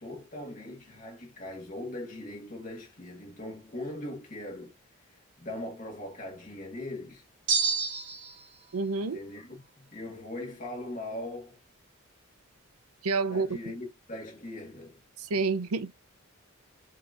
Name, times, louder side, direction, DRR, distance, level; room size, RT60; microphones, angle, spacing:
voice 1, 0.0-4.7 5.1-7.2 9.1-11.6 13.3-15.0, left 1 dB, 35° left, 1.7 m, -40 dB
sound 1, 7.5-8.4, right 5 dB, 50° right, 1.1 m, -28 dB
voice 2, 8.7-9.2 13.0-13.5 15.2-15.9, right 4 dB, 85° right, 0.6 m, -28 dB
5.7 x 2.9 x 2.5 m
head